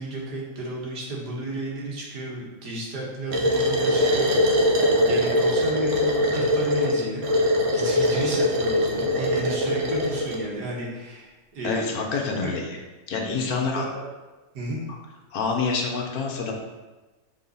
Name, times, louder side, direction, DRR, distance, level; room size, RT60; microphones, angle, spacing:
voice 1, 0.0-11.9 12.3-12.6 13.5-14.0 14.5-14.8, right 2 dB, 85° right, -3 dB, 2.0 m, -33 dB
sound 1, 3.3-10.4, left 1 dB, 55° right, 1.2 m, -22 dB
voice 2, 11.6-12.8 13.1-13.8 14.9-15.0 15.3-16.5, left 4 dB, 70° left, 1 dB, 1.4 m, -27 dB
7.2 x 3.8 x 4.1 m, 1.2 s
omnidirectional pair, 1.7 m